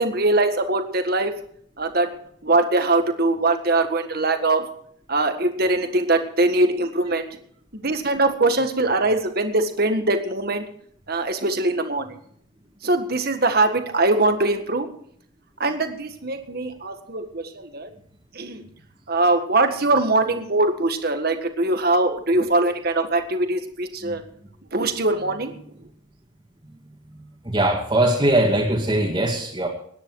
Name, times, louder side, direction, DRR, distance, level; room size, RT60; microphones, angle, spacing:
voice 1, 0.0-1.3 1.8-2.1 2.4-4.6 5.1-7.3 7.8-10.6 11.1-12.1 12.8-14.9 15.6-17.9 18.3-18.6 19.1-24.2 24.7-25.5, right 2 dB, 50° right, 7 dB, 1.7 m, -22 dB
voice 2, 27.4-29.7, right 1 dB, 25° right, -3 dB, 2.4 m, -21 dB
20.5 x 10.0 x 4.7 m, 0.64 s
head